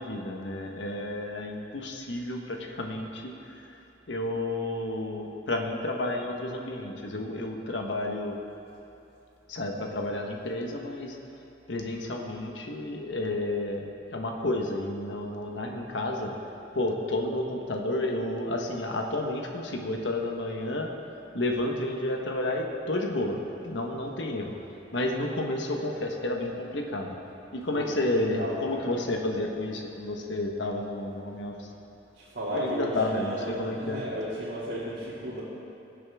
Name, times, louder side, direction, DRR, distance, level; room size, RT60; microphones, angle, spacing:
voice 1, 0.0-3.7 4.1-8.4 9.5-11.2 11.7-16.3 16.7-20.9 21.3-23.4 23.6-24.6 24.9-27.2 27.5-31.7 32.5-34.0, left 1 dB, 85° left, 1 dB, 1.3 m, -31 dB
voice 2, 27.7-29.0 32.1-35.4, equal, 60° right, -10 dB, 2.5 m, -34 dB
21.5 x 7.6 x 3.6 m, 2.8 s
head